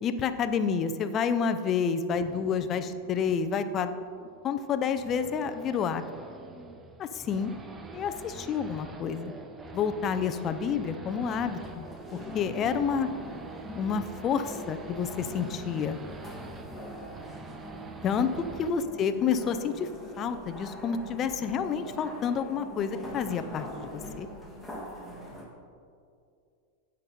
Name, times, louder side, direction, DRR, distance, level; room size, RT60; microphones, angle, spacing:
voice 1, 0.0-3.9 4.4-6.0 7.0-7.5 7.9-9.3 9.7-11.9 12.1-13.1 13.7-16.0 18.0-19.9 20.2-24.3, left 6 dB, 35° left, 10 dB, 0.6 m, -29 dB
Race car auto racing / Idling / Accelerating revving vroom, 2.1-18.7, right 3 dB, 20° right, 0.8 m, -45 dB
sound 1, 11.3-25.4, equal, ahead, 2.0 m, -43 dB
14.5 x 5.3 x 4.3 m, 2.4 s
hypercardioid pair, 120°, 0 cm